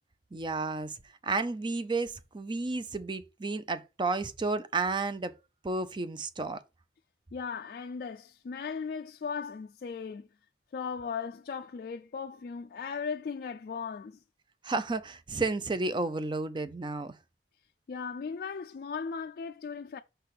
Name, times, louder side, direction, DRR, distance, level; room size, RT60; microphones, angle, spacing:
voice 1, 0.3-1.0 1.2-5.4 5.6-6.6 14.6-17.1, right 3 dB, 25° right, 0.5 m, -32 dB
voice 2, 7.3-10.3 10.7-14.2 17.9-20.0, left 5 dB, 55° left, 0.3 m, -37 dB
5.7 x 3.4 x 5.8 m
head